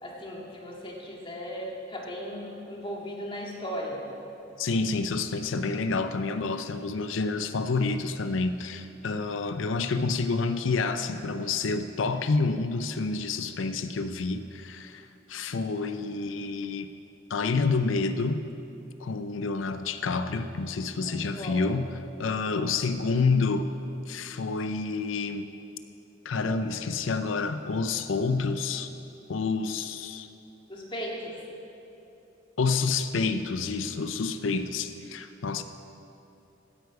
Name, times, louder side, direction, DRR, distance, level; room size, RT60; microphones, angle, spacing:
voice 1, 0.0-4.0 21.0-21.6 30.7-31.3, equal, 25° left, -2 dB, 1.9 m, -37 dB
voice 2, 4.6-16.9 17.3-18.4 19.0-21.9 22.2-23.7 24.1-25.5 26.2-28.9 29.3-30.3 32.6-35.6, left 4 dB, 70° left, 10 dB, 0.5 m, -28 dB
16.0 x 9.6 x 4.8 m, 2.9 s
head